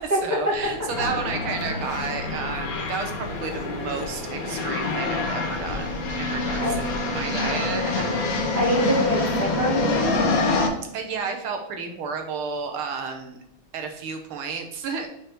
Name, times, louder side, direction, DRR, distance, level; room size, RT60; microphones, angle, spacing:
voice 1, 0.0-6.8 7.1-8.4 10.9-13.4 13.7-15.1, right 5 dB, 85° right, 5 dB, 1.8 m, -32 dB
sound 1, 0.5-10.7, left 3 dB, 55° left, 1.1 m, -26 dB
voice 2, 8.6-10.2, right 1 dB, 10° right, -5 dB, 2.0 m, -24 dB
5.1 x 4.5 x 4.5 m, 0.81 s
omnidirectional pair, 2.3 m